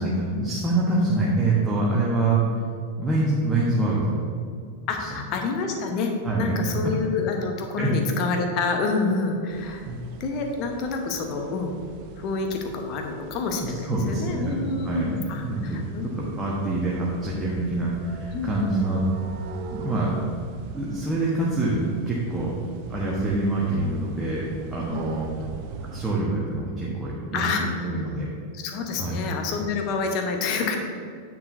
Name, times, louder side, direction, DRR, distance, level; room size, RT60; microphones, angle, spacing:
voice 1, 0.0-2.4 3.0-4.1 5.0-5.2 6.2-6.6 7.8-7.9 9.8-10.0 13.5-15.8 16.2-19.0 19.7-20.1 20.7-22.5 22.9-25.3 25.9-28.3 29.0-29.2, right 2 dB, 10° right, -5 dB, 1.3 m, -26 dB
voice 2, 4.9-9.8 10.2-11.8 12.2-16.4 18.3-18.7 24.9-25.1 27.3-27.9 28.5-30.8, left 4 dB, 40° left, 3 dB, 1.0 m, -28 dB
sound 1, 9.5-26.1, right 5 dB, 45° right, 0.6 m, -41 dB
9.6 x 7.2 x 2.7 m, 2.3 s
figure-of-eight pair, 90°, 0 cm